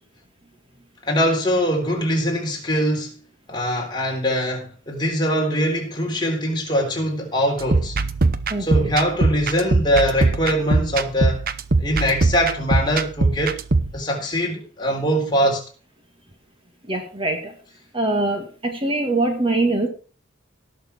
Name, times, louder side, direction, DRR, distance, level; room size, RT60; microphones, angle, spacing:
voice 1, 1.0-3.1 3.5-8.0 8.6-11.4 11.8-13.6 13.9-15.6, equal, 25° left, 3.7 m, -22 dB
sound 1, 7.6-13.9, right 3 dB, 50° right, 0.9 m, -21 dB
voice 2, 16.9-17.5 17.9-19.9, right 2 dB, 30° right, 2.0 m, -23 dB
18.5 x 6.7 x 4.5 m
head